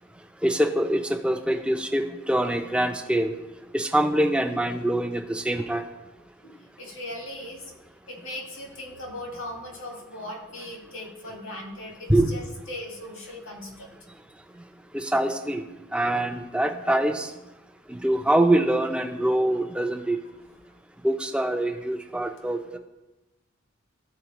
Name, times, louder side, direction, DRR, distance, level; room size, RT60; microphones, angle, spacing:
voice 1, 0.4-3.3 3.7-5.8 12.1-12.3 14.9-15.6 15.9-17.3 17.9-20.2 21.0-22.8, right 1 dB, 5° right, 6 dB, 0.4 m, -24 dB
voice 2, 6.4-7.7 8.0-14.0, left 1 dB, 90° left, 0 dB, 1.8 m, -39 dB
12.5 x 4.3 x 3.0 m, 1.0 s
head